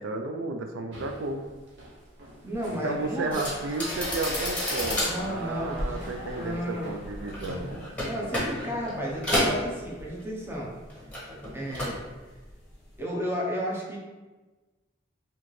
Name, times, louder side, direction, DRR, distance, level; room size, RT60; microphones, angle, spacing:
voice 1, 0.0-1.4 2.7-7.7, right 3 dB, 90° right, 4 dB, 0.4 m, -33 dB
sound 1, 0.9-8.3, right 1 dB, 65° right, 0.8 m, -47 dB
sound 2, 2.4-8.8 9.4-9.5, equal, 30° left, 0.9 m, -45 dB
voice 2, 2.4-3.4 5.0-6.1 6.3-7.0 8.0-10.7 11.5-12.0 13.0-14.0, equal, 15° right, -3 dB, 0.7 m, -33 dB
sound 3, 3.3-10.5 10.8-12.1 12.4-12.7, left 1 dB, 10° left, 1.3 m, -31 dB
4.1 x 2.8 x 3.1 m, 1.2 s
head